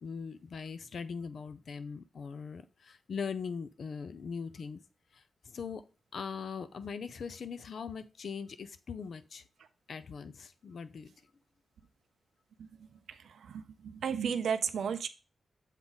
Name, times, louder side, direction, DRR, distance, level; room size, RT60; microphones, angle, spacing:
voice 1, 0.0-4.8 5.1-5.8 6.1-9.4 9.9-11.1 14.1-14.2, left 6 dB, 60° left, 12 dB, 0.5 m, -41 dB
voice 2, 13.1-15.1, right 7 dB, 85° right, 9 dB, 0.4 m, -34 dB
7.2 x 3.6 x 4.0 m, 0.33 s
wide cardioid pair, 155°, 0 cm